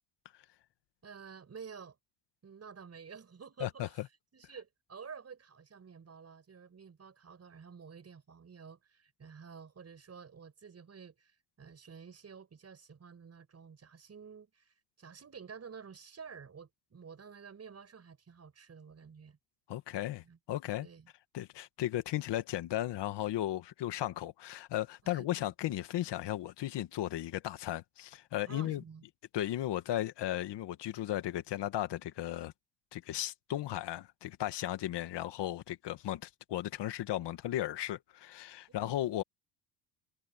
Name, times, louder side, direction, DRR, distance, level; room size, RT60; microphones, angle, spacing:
voice 1, 1.0-2.0 2.4-4.0 4.3-19.4 20.2-20.4 20.8-21.1 25.0-25.5 28.5-29.0 38.7-39.0, right 6 dB, 30° right, 7.1 m, -51 dB
voice 2, 19.7-20.9 21.3-28.8 29.3-32.5 32.9-39.2, left 13 dB, 60° left, 1.8 m, -35 dB
cardioid pair, 105°, 47 cm